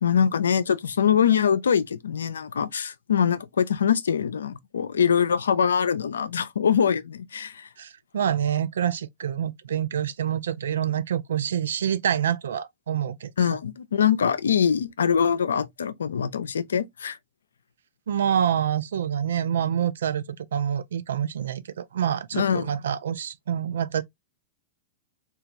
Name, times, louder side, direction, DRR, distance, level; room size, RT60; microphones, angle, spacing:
voice 1, 0.0-7.7 13.4-17.2 22.3-22.7, left 7 dB, 85° left, 0.3 m, -23 dB
voice 2, 7.8-13.3 18.1-24.0, right 9 dB, 80° right, 0.3 m, -27 dB
2.9 x 2.3 x 2.5 m
hypercardioid pair, 110°, 0 cm